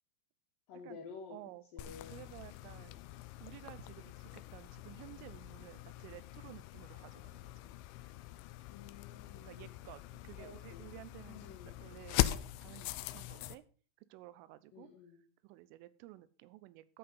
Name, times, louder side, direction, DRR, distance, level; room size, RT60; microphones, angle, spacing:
voice 1, 0.7-1.4 1.7-2.2 8.7-9.7 10.4-10.9 11.3-11.8 14.7-15.2, left 5 dB, 65° left, 2 dB, 2.3 m, -51 dB
voice 2, 1.3-3.0 3.4-7.8 9.4-11.4 11.7-13.6 14.0-14.9 15.4-17.0, right 16 dB, 85° right, 16 dB, 3.3 m, -54 dB
sound 1, 1.8-13.6, left 15 dB, 80° left, 2.9 m, -41 dB
13.5 x 5.7 x 5.4 m, 0.40 s
omnidirectional pair, 5.7 m